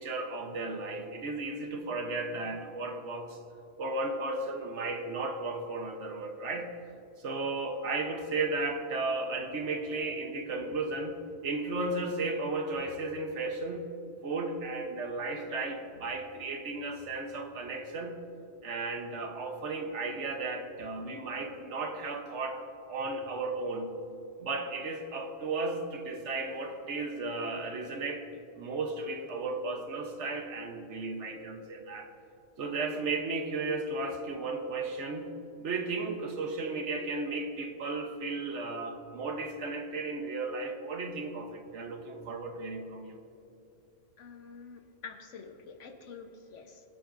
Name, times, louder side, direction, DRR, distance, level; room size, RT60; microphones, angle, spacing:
voice 1, 0.0-3.4 3.8-6.7 7.2-11.2 11.4-13.9 14.2-18.2 18.6-22.6 22.9-24.0 24.4-28.3 28.6-32.1 32.6-35.3 35.6-43.2, right 3 dB, 70° right, 4 dB, 1.3 m, -34 dB
voice 2, 44.2-46.8, left 5 dB, 75° left, 6 dB, 1.3 m, -47 dB
21.0 x 10.0 x 2.6 m, 2.7 s
omnidirectional pair, 1.3 m